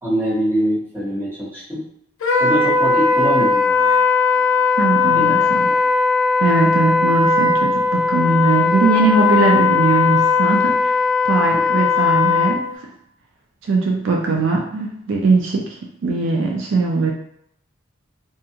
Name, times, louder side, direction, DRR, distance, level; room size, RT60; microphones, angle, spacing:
voice 1, 0.0-1.8 2.4-4.0 4.3-4.5 5.1-5.9 11.5-11.8, equal, 10° right, -9 dB, 0.9 m, -24 dB
Wind instrument woodwind instrument, 2.2-12.6, left 4 dB, 70° left, 0.4 m, -17 dB
voice 2, 4.8-5.7 6.4-11.0 11.3-12.7 13.7-17.1, right 3 dB, 60° right, 0 dB, 0.3 m, -20 dB
2.5 x 2.4 x 2.6 m, 0.74 s
head